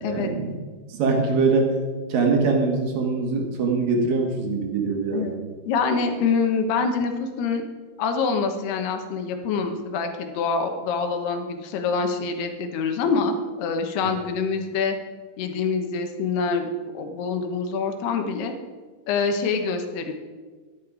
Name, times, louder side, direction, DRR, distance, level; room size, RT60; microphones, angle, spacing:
voice 1, 0.0-0.6 1.0-1.7 2.1-5.4, right 4 dB, 60° right, 2 dB, 2.8 m, -23 dB
voice 2, 5.6-7.6 8.0-15.0 15.4-18.5 19.1-20.1, left 5 dB, 70° left, 6 dB, 2.9 m, -25 dB
14.0 x 11.0 x 4.9 m, 1.4 s
omnidirectional pair, 5.4 m